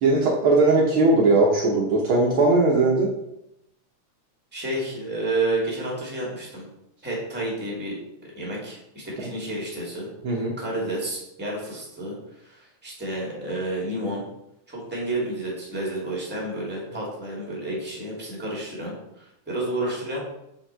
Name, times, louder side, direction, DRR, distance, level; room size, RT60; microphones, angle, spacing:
voice 1, 0.0-3.1 10.2-10.5, right 3 dB, 85° right, -2 dB, 1.1 m, -19 dB
voice 2, 4.5-6.7 7.0-8.0 8.3-10.1 10.6-14.2 14.7-20.2, right 2 dB, 5° right, -3 dB, 1.6 m, -30 dB
6.4 x 4.7 x 4.4 m, 0.83 s
omnidirectional pair, 3.6 m